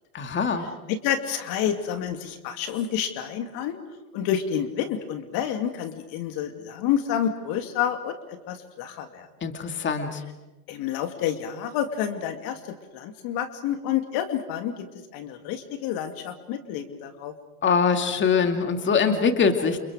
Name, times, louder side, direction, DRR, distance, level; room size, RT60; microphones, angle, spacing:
voice 1, 0.1-0.7 9.4-10.2 17.6-19.8, left 5 dB, 25° left, 6 dB, 2.4 m, -23 dB
voice 2, 0.9-3.8 4.1-9.3 10.7-14.9 15.1-17.3, left 9 dB, 50° left, 7 dB, 2.5 m, -29 dB
29.0 x 29.0 x 5.0 m, 1.1 s
hypercardioid pair, 95°, 46 cm